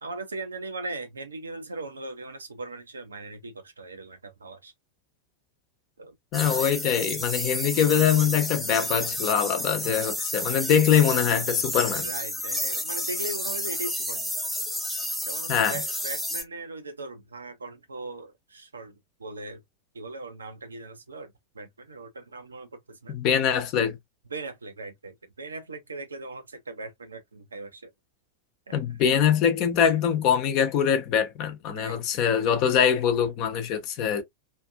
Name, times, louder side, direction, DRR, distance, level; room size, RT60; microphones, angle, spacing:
voice 1, 0.0-4.7 6.0-6.2 12.0-14.3 15.2-19.6 19.9-23.1 24.3-27.9 28.7-28.8 31.7-32.0, right 2 dB, 75° right, 0.6 m, -39 dB
voice 2, 6.3-12.1 15.5-15.8 23.1-24.0 28.7-34.2, left 8 dB, 40° left, 0.8 m, -23 dB
sound 1, 6.3-16.4, left 1 dB, ahead, 1.0 m, -31 dB
2.8 x 2.5 x 2.4 m
figure-of-eight pair, 90°, 0 cm